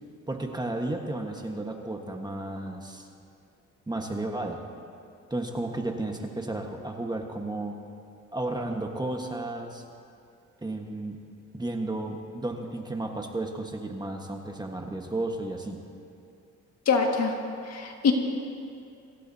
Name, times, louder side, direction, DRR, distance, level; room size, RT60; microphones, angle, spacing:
voice 1, 0.3-3.1 3.9-4.6 5.3-7.8 8.3-9.8 10.6-11.2 11.5-15.8, right 2 dB, 15° right, 2 dB, 1.5 m, -33 dB
voice 2, 16.9-17.4 17.7-18.1, left 5 dB, 55° left, 2 dB, 2.0 m, -24 dB
25.5 x 15.5 x 2.8 m, 2.5 s
cardioid pair, 90°, 30 cm